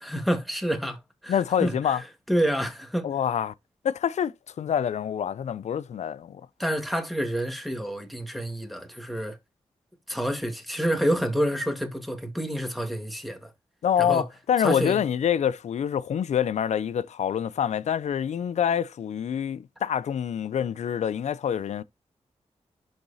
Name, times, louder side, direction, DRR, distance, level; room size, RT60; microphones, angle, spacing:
voice 1, 0.0-3.1 6.6-9.4 10.1-13.5 14.0-14.2 14.6-15.0, equal, ahead, 1.8 m, -28 dB
voice 2, 1.3-2.0 3.0-3.5 3.8-6.4 13.8-21.8, left 9 dB, 90° left, 0.5 m, -26 dB
11.5 x 4.0 x 2.7 m
wide cardioid pair, 90°, 11 cm